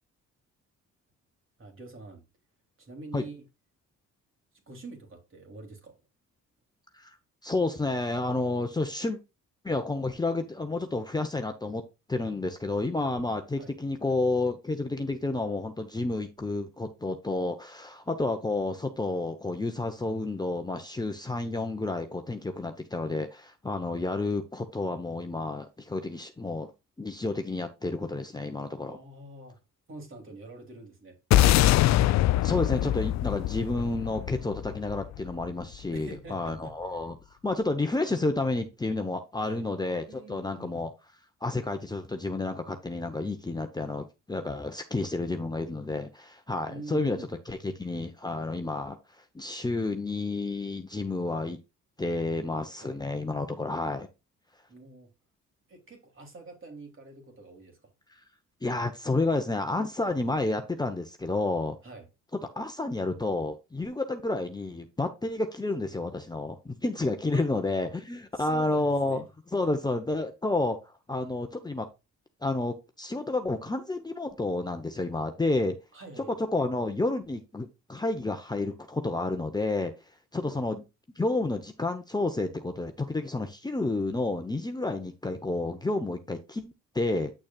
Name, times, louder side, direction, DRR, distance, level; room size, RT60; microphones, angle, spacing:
voice 1, 1.6-2.2 2.8-3.4 4.7-6.0 13.6-13.8 28.9-29.6 29.9-31.2 35.9-36.7 39.4-39.6 40.1-40.9 46.7-47.3 52.8-53.0 54.7-55.1 55.7-57.9 61.8-62.1 67.3-67.5 68.3-69.2 75.9-76.4 80.4-80.7, right 2 dB, 45° right, 3.2 m, -45 dB
voice 2, 7.4-9.2 9.6-11.8 12.1-26.7 27.0-29.0 32.4-37.2 37.4-40.9 41.4-47.2 47.5-51.6 52.0-54.1 58.6-61.8 62.5-69.2 69.5-71.9 72.4-75.8 76.4-79.9 80.3-80.8 81.2-87.3, left 2 dB, 15° left, 0.9 m, -30 dB
sound 1, 31.3-35.8, left 14 dB, 65° left, 0.4 m, -23 dB
8.7 x 6.2 x 2.4 m
cardioid pair, 90°, 30 cm